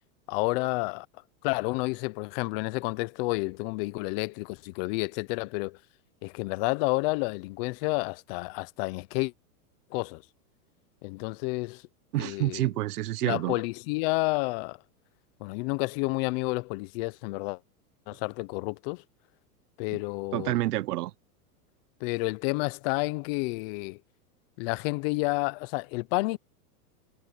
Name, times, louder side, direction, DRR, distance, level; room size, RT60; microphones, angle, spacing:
voice 1, 0.3-1.1 1.4-5.8 6.2-9.3 9.9-10.2 11.0-11.8 12.2-12.7 13.2-14.8 15.4-17.6 18.1-19.0 19.8-20.6 22.0-24.0 24.6-26.4, left 26 dB, 40° left, 0.7 m, -30 dB
voice 2, 12.1-13.6 20.3-21.1, right 16 dB, 75° right, 1.1 m, -28 dB
supercardioid pair, 145°, 46 cm